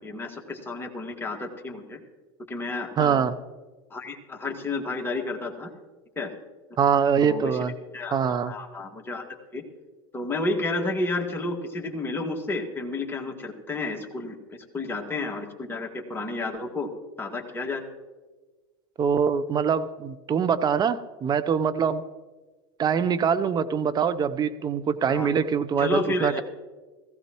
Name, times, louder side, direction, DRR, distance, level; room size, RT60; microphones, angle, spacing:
voice 1, 0.0-2.0 2.5-3.3 3.9-5.7 6.2-6.3 7.2-9.2 9.5-9.6 10.1-16.9 17.2-17.8 25.0-25.3 25.8-26.4, left 2 dB, 15° left, 1 dB, 2.1 m, -31 dB
voice 2, 3.0-3.3 6.8-7.7 8.1-8.5 19.0-22.0 22.8-26.4, right 7 dB, 35° right, 13 dB, 0.8 m, -24 dB
16.5 x 15.0 x 3.1 m, 1.3 s
hypercardioid pair, 90°, 13 cm